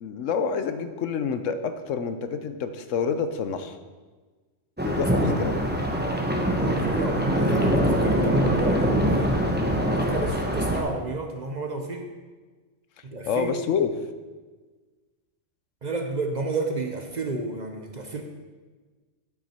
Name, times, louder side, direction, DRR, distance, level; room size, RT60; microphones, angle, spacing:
voice 1, 0.0-3.8 4.8-5.6 13.3-13.9, left 6 dB, 75° left, 10 dB, 1.0 m, -28 dB
sound 1, 4.8-10.8, equal, 10° right, 0.8 m, -23 dB
voice 2, 5.9-9.5 9.9-12.1 13.0-13.5 15.8-18.2, right 2 dB, 40° right, 3 dB, 0.7 m, -31 dB
8.7 x 8.6 x 4.3 m, 1.4 s
omnidirectional pair, 1.3 m